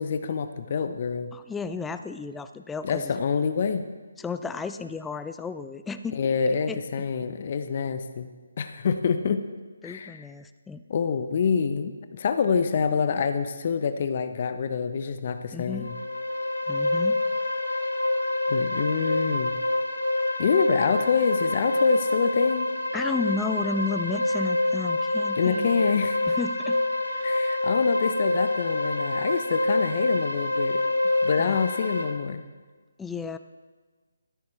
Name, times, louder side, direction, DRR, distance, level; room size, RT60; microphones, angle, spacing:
voice 1, 0.0-1.3 2.8-3.9 6.1-8.3 8.6-9.4 9.8-10.2 10.9-15.9 18.5-19.6 20.4-22.7 25.4-26.2 27.2-30.8 31.2-32.4, left 6 dB, 45° left, 9 dB, 0.7 m, -26 dB
voice 2, 1.3-3.1 4.2-6.2 6.5-6.8 9.8-10.8 15.5-15.9 16.7-17.2 22.9-25.7 26.3-26.8 27.1-27.4 31.4-31.6 33.0-33.4, left 4 dB, 5° left, 10 dB, 0.4 m, -33 dB
sound 1, 15.7-32.0, left 2 dB, 90° left, 2.0 m, -26 dB
13.5 x 12.5 x 3.2 m, 1.4 s
figure-of-eight pair, 150°, 0 cm